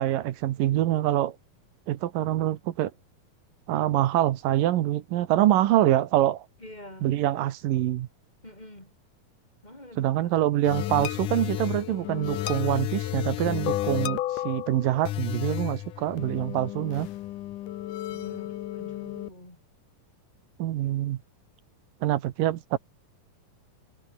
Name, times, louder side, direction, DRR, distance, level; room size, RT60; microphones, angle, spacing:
voice 1, 0.0-1.4 1.9-2.9 3.7-6.5 7.0-8.1 10.0-17.1 20.6-21.2 22.0-22.8, right 13 dB, 75° right, 2.7 m, -25 dB
voice 2, 6.6-7.1 8.4-8.9 9.6-10.3 18.1-19.6, left 1 dB, 10° left, 4.2 m, -46 dB
sound 1, 10.6-19.3, left 14 dB, 70° left, 2.4 m, -32 dB
omnidirectional pair, 4.2 m